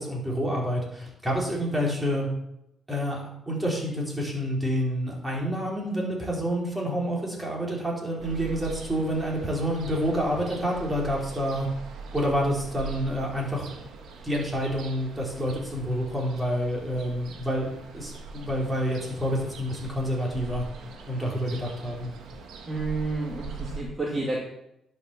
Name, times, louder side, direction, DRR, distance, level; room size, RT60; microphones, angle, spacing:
voice 1, 0.0-2.3 2.9-3.2 3.5-11.7 12.1-13.7 14.2-17.7 17.9-20.6 21.1-22.1, equal, 10° right, -3 dB, 4.2 m, -28 dB
Ocean, 8.2-23.8, right 4 dB, 70° right, 1.8 m, -42 dB
voice 2, 22.6-24.4, right 2 dB, 30° right, -3 dB, 2.3 m, -30 dB
11.0 x 6.6 x 6.1 m, 0.84 s
cardioid pair, 90°, 0 cm